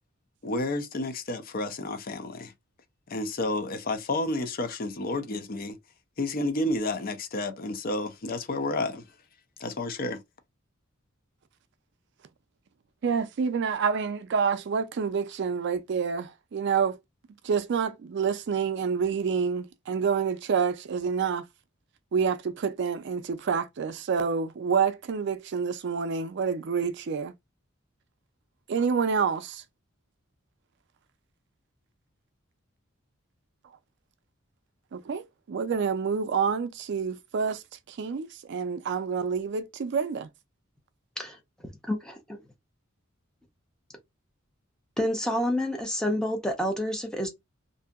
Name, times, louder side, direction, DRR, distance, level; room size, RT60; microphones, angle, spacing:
voice 1, 0.4-2.5 3.1-5.8 6.2-9.1 9.6-10.2, left 2 dB, 45° left, 0.5 m, -30 dB
voice 2, 13.0-17.0 17.4-21.4 22.1-27.3 28.7-29.6 34.9-37.6 37.9-40.3, right 6 dB, 60° right, 0.4 m, -28 dB
voice 3, 41.8-42.4 45.0-47.3, left 1 dB, 5° left, 0.7 m, -28 dB
2.7 x 2.6 x 2.3 m
head